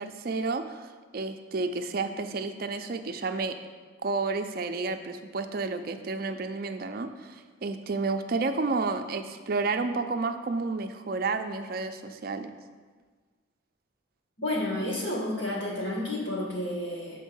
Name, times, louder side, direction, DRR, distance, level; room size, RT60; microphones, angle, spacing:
voice 1, 0.0-3.6 4.0-12.5, right 3 dB, 50° right, 7 dB, 0.4 m, -31 dB
voice 2, 14.4-17.2, left 1 dB, 65° left, -3 dB, 1.8 m, -31 dB
7.2 x 4.3 x 5.4 m, 1.5 s
head